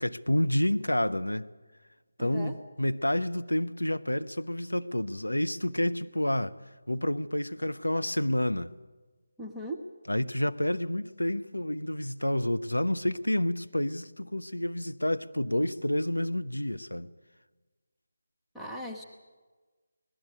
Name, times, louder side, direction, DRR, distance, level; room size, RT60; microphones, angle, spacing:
voice 1, 0.0-1.5 2.2-6.5 6.9-8.7 10.1-17.1, left 1 dB, 85° left, 0.8 m, -29 dB
voice 2, 2.2-2.6 9.4-9.8 18.5-19.0, equal, ahead, 1.1 m, -38 dB
19.5 x 14.0 x 10.0 m
figure-of-eight pair, 155°, 0 cm